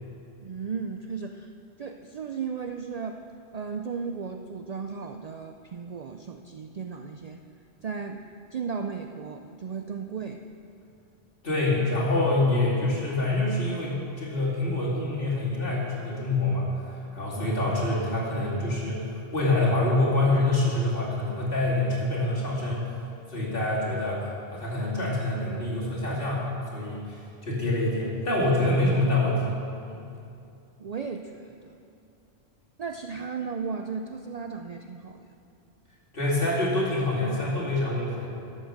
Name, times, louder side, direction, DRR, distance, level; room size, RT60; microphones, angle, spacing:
voice 1, 0.4-1.5 1.8-3.2 3.5-7.4 7.8-8.2 8.5-10.4 17.4-17.5 30.8-31.8 32.8-35.3, right 5 dB, 55° right, 5 dB, 0.4 m, -35 dB
voice 2, 11.4-22.9 23.3-26.4 26.7-29.4 29.9-30.0 36.1-38.3, left 2 dB, 55° left, -6 dB, 3.0 m, -26 dB
12.5 x 7.7 x 6.6 m, 2.6 s
omnidirectional pair, 1.1 m